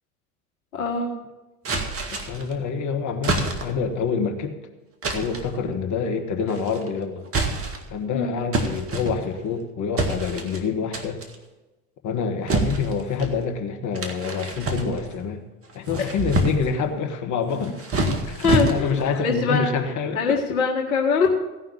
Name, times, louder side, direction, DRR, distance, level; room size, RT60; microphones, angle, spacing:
voice 1, 0.7-1.1 8.1-8.4 18.4-19.7 20.2-21.5, left 4 dB, 70° left, 1 dB, 1.7 m, -23 dB
sound 1, 1.6-2.5 3.2-3.9 5.0-5.5 6.5-6.9 7.3-8.0 8.5-9.5 10.0-10.6 10.9-11.4 12.5-13.3 13.9-15.2 15.7-16.8 17.5-19.1, right 2 dB, 30° right, 1.9 m, -27 dB
voice 2, 2.1-4.5 5.1-7.2 7.9-11.2 12.0-15.4 15.7-17.8 18.3-20.6, left 5 dB, 40° left, 4 dB, 1.5 m, -27 dB
17.0 x 5.6 x 7.1 m, 1.1 s
hypercardioid pair, 80°, 45 cm